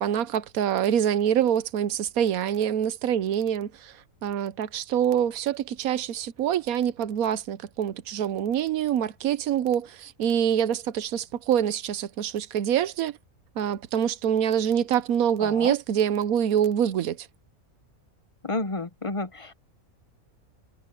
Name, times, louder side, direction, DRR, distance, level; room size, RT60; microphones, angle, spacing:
voice 1, 0.0-3.9 4.2-13.2 13.6-17.3, right 9 dB, 90° right, 1.2 m, -25 dB
voice 2, 15.4-15.7 18.4-19.5, left 2 dB, 25° left, 0.8 m, -31 dB
omnidirectional pair, 1.5 m